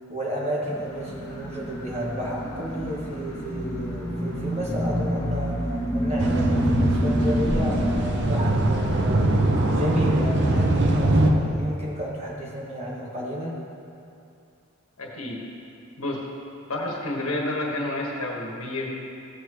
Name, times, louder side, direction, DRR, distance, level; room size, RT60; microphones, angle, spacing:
voice 1, 0.1-9.4 9.7-13.6, equal, 30° right, -4 dB, 1.8 m, -32 dB
sound 1, 0.6-8.0, equal, 25° left, 2.4 m, -28 dB
sound 2, 6.2-11.3, right 1 dB, 60° right, 0.9 m, -22 dB
voice 2, 15.0-15.4 16.0-16.2 16.7-18.9, left 1 dB, 85° left, -2 dB, 1.5 m, -29 dB
15.0 x 8.3 x 3.1 m, 2.6 s
head